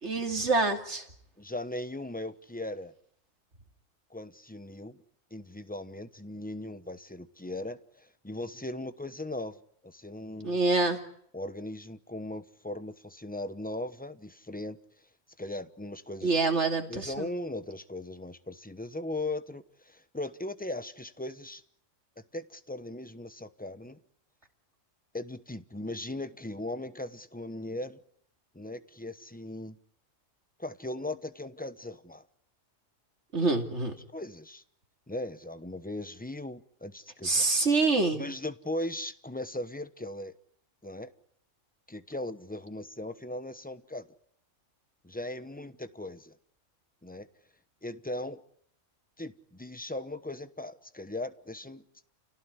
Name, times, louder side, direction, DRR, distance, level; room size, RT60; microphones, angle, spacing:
voice 1, 0.0-1.0 10.4-11.0 16.2-17.3 33.3-33.9 37.2-38.2, right 3 dB, 60° right, 3.1 m, -26 dB
voice 2, 1.4-2.9 4.1-5.0 5.3-9.6 9.8-10.6 11.3-14.8 15.4-16.3 16.9-21.6 22.3-24.0 25.1-28.0 28.5-29.8 30.6-32.3 34.1-34.6 35.1-37.4 38.1-40.3 40.8-41.1 41.9-44.1 45.0-46.4 47.0-47.3 47.8-48.4 49.2-51.8, left 1 dB, 10° left, 0.9 m, -38 dB
29.0 x 17.5 x 9.8 m
omnidirectional pair, 1.3 m